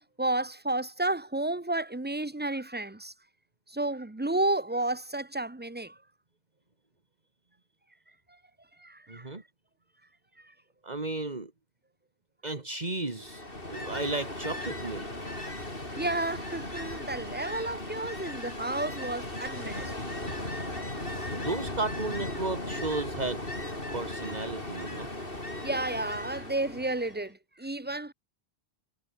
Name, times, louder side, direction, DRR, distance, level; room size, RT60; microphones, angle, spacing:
voice 1, 0.2-3.1 3.7-6.0 8.8-9.3 16.0-19.9 25.6-28.1, right 2 dB, 10° right, 0.9 m, -31 dB
voice 2, 9.1-9.4 10.8-11.5 12.4-13.4 13.7-15.1 21.4-25.1, right 3 dB, 40° right, 2.6 m, -34 dB
Ocean, 13.2-27.2, left 1 dB, 60° left, 6.1 m, -37 dB
omnidirectional pair, 1.0 m